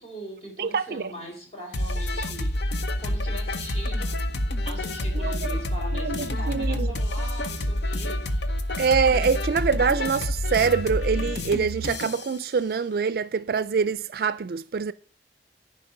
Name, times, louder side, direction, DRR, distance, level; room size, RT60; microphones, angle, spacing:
voice 1, 0.0-2.6 3.0-4.2 4.7-8.6 10.0-10.2, equal, 35° left, 3.7 m, -41 dB
voice 2, 0.6-1.0 5.2-5.5 6.1-6.2 6.5-6.9 8.8-14.9, right 5 dB, 55° right, 0.4 m, -24 dB
sound 1, 1.7-12.3, left 1 dB, 75° left, 0.8 m, -28 dB
10.0 x 5.2 x 5.6 m
head